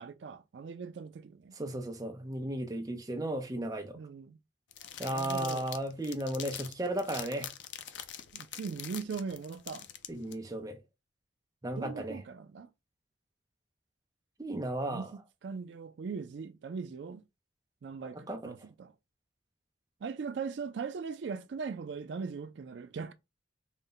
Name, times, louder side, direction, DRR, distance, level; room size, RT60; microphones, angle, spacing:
voice 1, 0.0-1.5 4.0-4.4 5.1-5.7 8.3-9.9 11.8-12.7 14.9-15.1 15.4-17.2 17.8-18.9 20.0-23.1, right 5 dB, 70° right, 0.4 m, -40 dB
voice 2, 1.5-4.0 5.0-7.5 10.1-10.8 11.6-12.2 14.4-15.1 18.1-18.7, right 1 dB, 20° right, 0.5 m, -35 dB
sound 1, 4.7-10.3, left 10 dB, 70° left, 0.5 m, -44 dB
4.0 x 2.1 x 3.8 m
head